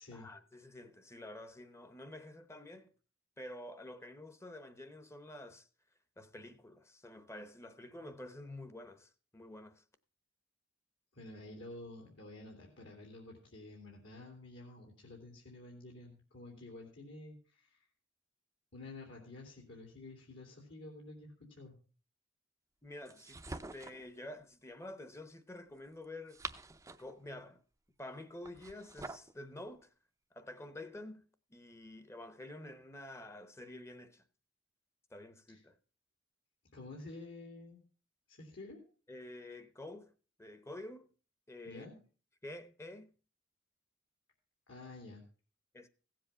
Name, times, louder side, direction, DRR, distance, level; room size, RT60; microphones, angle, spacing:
voice 1, 0.1-2.9 3.4-5.7 6.2-9.8 22.8-26.4 27.0-27.6 28.0-29.9 30.3-34.2 35.1-35.8 39.1-40.1 40.4-41.1 41.5-41.9 42.4-43.1 45.7-45.9, left 1 dB, 15° left, 0.9 m, -49 dB
voice 2, 11.1-17.9 18.7-21.8 35.5-35.6 36.7-37.8 38.3-38.8 41.6-42.0 44.7-45.2, left 2 dB, 70° left, 2.9 m, -50 dB
sound 1, 23.0-24.1 26.0-27.2 28.4-29.3, right 3 dB, 15° right, 0.6 m, -46 dB
16.0 x 7.6 x 5.5 m
head